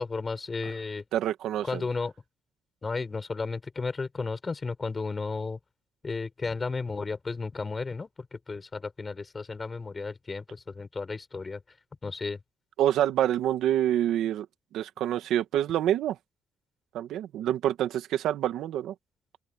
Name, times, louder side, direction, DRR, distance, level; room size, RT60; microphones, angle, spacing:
voice 1, 0.0-1.0 1.6-2.1 2.8-5.6 6.0-11.6 12.0-12.4, left 4 dB, 30° left, 7.2 m, -33 dB
voice 2, 1.1-1.8 12.8-14.5 14.7-16.2 16.9-18.9, right 11 dB, 80° right, 1.7 m, -27 dB
cardioid pair, 90°, 0 cm